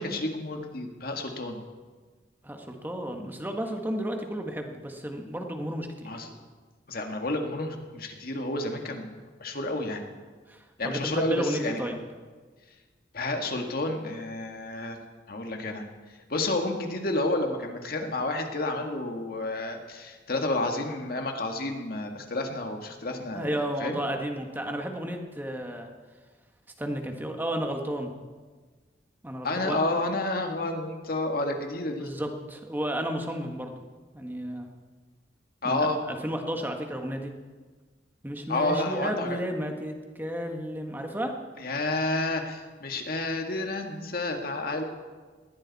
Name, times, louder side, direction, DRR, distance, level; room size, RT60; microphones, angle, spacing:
voice 1, 0.0-1.6 6.1-6.3 6.9-10.0 10.8-11.8 13.1-15.0 15.3-15.9 16.3-24.0 29.4-32.1 35.6-36.0 38.5-39.4 41.6-44.8, left 2 dB, 55° left, 3 dB, 1.9 m, -30 dB
voice 2, 2.4-6.1 10.5-12.0 23.3-25.9 26.8-28.1 29.2-29.8 32.0-33.7 34.1-34.7 35.6-37.3 38.2-41.3, equal, 10° right, 3 dB, 1.6 m, -33 dB
20.5 x 15.0 x 4.2 m, 1.4 s
head